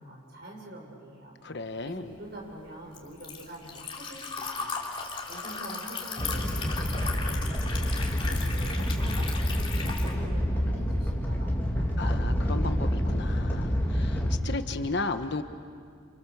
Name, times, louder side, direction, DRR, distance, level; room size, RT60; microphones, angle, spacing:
voice 1, 0.0-1.3 1.8-4.7 5.3-7.9 8.2-9.7 10.0-12.0, right 1 dB, 50° right, -1 dB, 6.8 m, -45 dB
voice 2, 1.4-2.1 12.0-15.4, left 3 dB, 55° left, 8 dB, 1.1 m, -34 dB
Liquid, 1.9-10.1, left 4 dB, 25° left, 2.9 m, -37 dB
Animal, 6.2-14.3, equal, 10° left, 2.8 m, -28 dB
28.5 x 28.0 x 7.0 m, 2.2 s
head